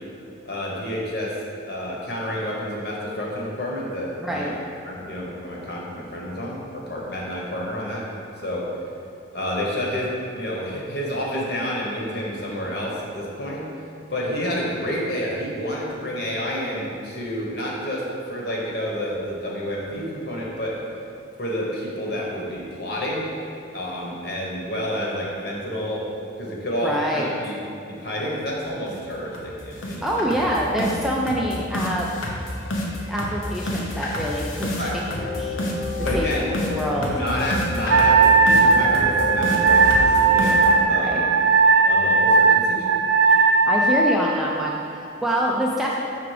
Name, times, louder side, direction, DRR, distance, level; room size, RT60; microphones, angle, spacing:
voice 1, 0.4-1.3 1.7-4.5 4.8-8.1 8.4-8.7 9.3-13.6 14.1-20.7 21.4-23.3 23.7-26.0 26.4-27.6 27.9-30.2 34.8-35.0 36.0-36.5 37.0-41.3 41.9-42.9, equal, 55° left, -3 dB, 1.1 m, -29 dB
voice 2, 4.2-4.5 26.8-27.3 30.0-32.1 33.1-35.6 36.1-36.3 36.6-37.1 40.9-41.3 43.7-46.0, equal, ahead, -3 dB, 0.3 m, -25 dB
sound 1, 28.4-28.5 28.9-29.0 29.3-29.5 29.8-40.8, left 1 dB, 90° left, 0.8 m, -28 dB
Wind instrument woodwind instrument, 37.9-44.2, right 4 dB, 75° right, 0.4 m, -17 dB
5.9 x 3.6 x 4.9 m, 2.6 s
head